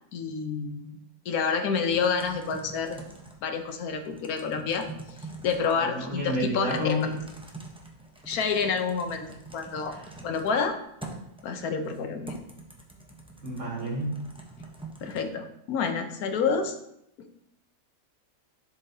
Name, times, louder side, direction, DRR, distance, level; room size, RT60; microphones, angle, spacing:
voice 1, 0.1-1.0 1.3-3.0 3.4-4.9 5.4-7.0 8.3-9.2 9.5-10.0 10.2-10.8 11.4-12.3 15.0-16.7, left 5 dB, 75° left, 6 dB, 1.3 m, -28 dB
Typing, 1.9-15.3, right 3 dB, 5° right, 0.5 m, -44 dB
voice 2, 5.8-7.2 9.9-10.1 13.4-14.3, left 1 dB, 60° right, -4 dB, 2.4 m, -30 dB
11.0 x 4.5 x 2.7 m, 0.78 s
omnidirectional pair, 1.6 m